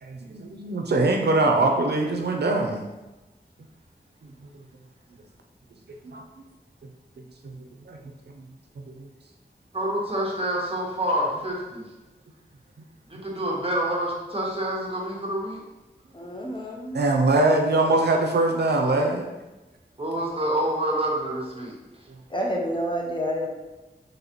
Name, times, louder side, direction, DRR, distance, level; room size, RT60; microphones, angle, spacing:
voice 1, 0.0-2.8 4.2-4.3 6.1-6.2 7.4-7.5 7.8-8.0 8.3-8.4 8.8-9.1 13.1-13.2 16.9-19.3, right 2 dB, 85° right, 2 dB, 0.5 m, -23 dB
voice 2, 9.7-11.8 13.1-15.6 20.0-21.7, right 1 dB, 35° right, -3 dB, 1.0 m, -27 dB
voice 3, 16.1-17.0 22.3-23.5, equal, 30° left, -1 dB, 0.6 m, -29 dB
4.0 x 3.3 x 2.9 m, 1.1 s
wide cardioid pair, 80°, 17 cm